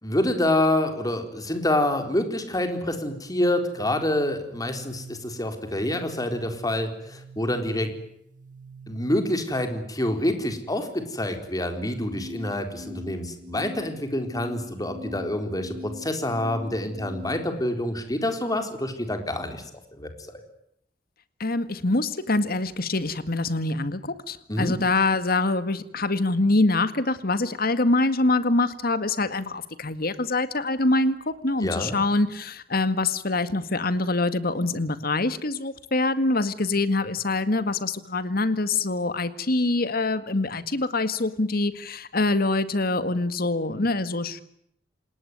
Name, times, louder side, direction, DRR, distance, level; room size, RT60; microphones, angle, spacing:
voice 1, 0.0-7.9 8.9-19.6 19.9-20.4 24.5-24.7 31.6-32.0, left 1 dB, 20° left, 6 dB, 4.1 m, -27 dB
sound 1, 4.3-9.6 11.7-17.7, left 1 dB, 45° right, 2.0 m, -43 dB
voice 2, 21.4-44.4, left 2 dB, 55° left, 12 dB, 1.9 m, -25 dB
28.0 x 19.5 x 9.4 m, 0.75 s
head